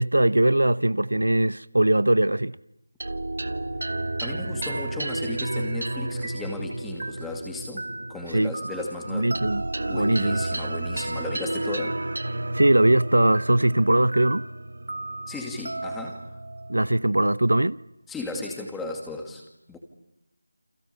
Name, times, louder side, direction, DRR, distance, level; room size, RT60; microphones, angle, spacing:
voice 1, 0.0-2.6 8.3-8.5 9.1-9.7 9.9-10.4 12.5-14.5 16.7-17.8, right 1 dB, 80° right, 0.9 m, -21 dB
sound 1, 3.0-17.7, right 2 dB, 60° right, 1.5 m, -32 dB
voice 2, 4.2-7.8 8.1-9.4 9.8-12.0 15.3-16.3 18.1-19.4 19.7-19.8, left 2 dB, 5° left, 2.4 m, -35 dB
29.0 x 27.0 x 7.0 m
figure-of-eight pair, 170°, 0 cm